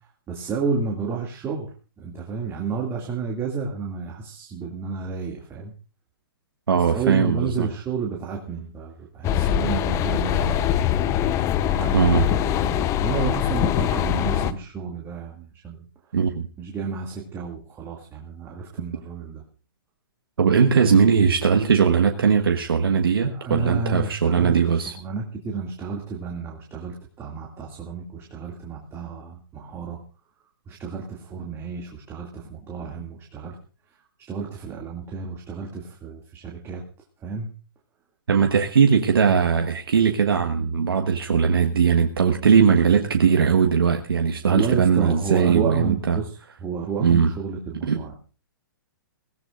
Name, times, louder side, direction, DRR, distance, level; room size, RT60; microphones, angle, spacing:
voice 1, 0.3-1.7 2.0-5.7 6.9-11.1 11.7-15.9 16.6-19.4 23.2-30.0 30.7-33.6 34.3-36.8 37.2-37.5 44.5-46.3 46.6-48.1, right 5 dB, 20° right, -1 dB, 2.4 m, -31 dB
voice 2, 6.7-7.7 11.9-12.3 16.1-16.5 20.4-25.0 38.3-46.2 47.0-47.3 47.8-48.0, right 6 dB, 75° right, 4 dB, 1.4 m, -19 dB
sound 1, 9.2-14.5, left 10 dB, 25° left, 0.8 m, -23 dB
22.0 x 17.0 x 2.5 m, 0.37 s
hypercardioid pair, 125°, 12 cm